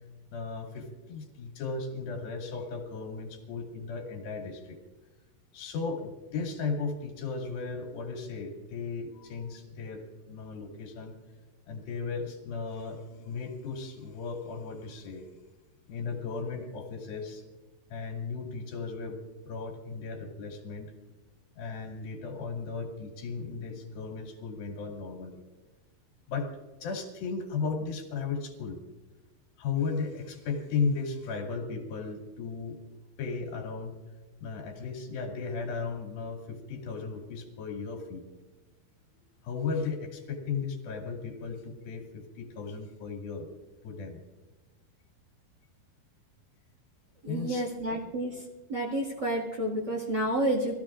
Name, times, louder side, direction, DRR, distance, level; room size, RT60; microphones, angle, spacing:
voice 1, 0.3-4.8 5.5-11.2 11.7-15.3 15.9-17.4 17.9-19.2 19.5-20.9 21.6-25.4 26.3-26.5 26.8-28.8 29.6-32.8 33.2-34.0 34.4-38.3 39.4-43.5 43.8-44.2 47.3-47.7, left 4 dB, 70° left, 1 dB, 4.1 m, -35 dB
voice 2, 47.2-48.4 48.7-50.8, right 1 dB, 35° right, -3 dB, 2.0 m, -30 dB
24.0 x 16.0 x 2.5 m, 1.2 s
omnidirectional pair, 4.5 m